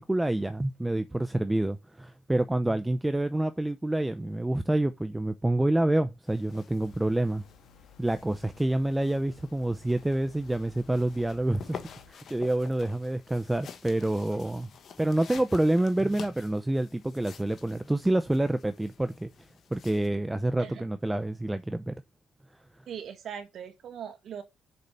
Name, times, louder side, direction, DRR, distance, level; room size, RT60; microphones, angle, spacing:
voice 1, 0.0-7.4 8.0-11.8 12.1-14.7 15.0-19.3 19.7-21.9, right 1 dB, 10° right, 0.6 m, -27 dB
sound 1, 6.2-20.1, left 7 dB, 60° left, 1.4 m, -49 dB
sound 2, 6.8-12.1, left 5 dB, 80° left, 1.7 m, -55 dB
voice 2, 22.9-24.4, right 8 dB, 65° right, 1.8 m, -40 dB
6.8 x 4.8 x 5.6 m
cardioid pair, 90°, 0 cm